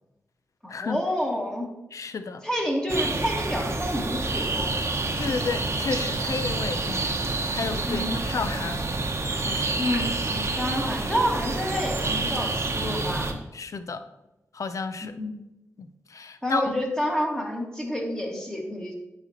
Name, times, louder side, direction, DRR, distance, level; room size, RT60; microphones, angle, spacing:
voice 1, 0.6-1.7 2.4-5.0 7.9-8.1 9.8-13.3 15.2-15.4 16.4-18.9, equal, 10° left, -1 dB, 1.9 m, -29 dB
voice 2, 1.9-2.4 5.2-7.1 7.5-8.9 9.5-9.8 13.5-14.0 14.5-15.1 15.8-16.8, left 4 dB, 65° left, 11 dB, 0.5 m, -32 dB
sound 1, 2.9-13.3, right 3 dB, 50° right, 0.8 m, -28 dB
9.3 x 4.2 x 3.0 m, 0.96 s
cardioid pair, 50°, 6 cm